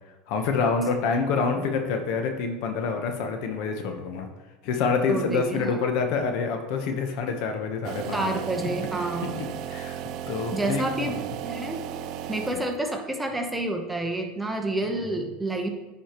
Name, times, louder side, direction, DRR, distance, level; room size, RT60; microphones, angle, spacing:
voice 1, 0.3-4.3 4.6-8.4 9.2-11.4 12.5-12.6 15.0-15.2, left 5 dB, 65° left, 5 dB, 1.0 m, -27 dB
voice 2, 5.1-5.8 8.1-9.3 10.5-11.2 11.4-11.8 12.3-15.7, right 2 dB, 5° right, 2 dB, 1.0 m, -29 dB
sound 1, 7.8-13.0, right 10 dB, 55° right, 0.4 m, -35 dB
10.0 x 4.9 x 3.0 m, 1.1 s
supercardioid pair, 110°, 0 cm